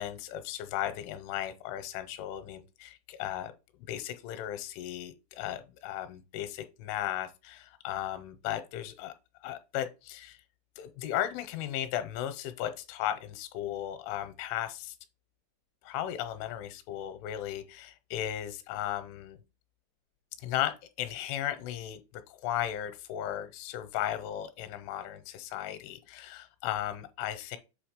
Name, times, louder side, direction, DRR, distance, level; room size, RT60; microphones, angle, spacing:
voice 1, 0.0-3.5 3.9-9.1 9.4-10.4 10.8-15.0 15.8-19.4 20.4-22.0 22.3-27.6, left 12 dB, 90° left, 3.1 m, -36 dB
7.8 x 2.9 x 5.1 m
omnidirectional pair, 5.5 m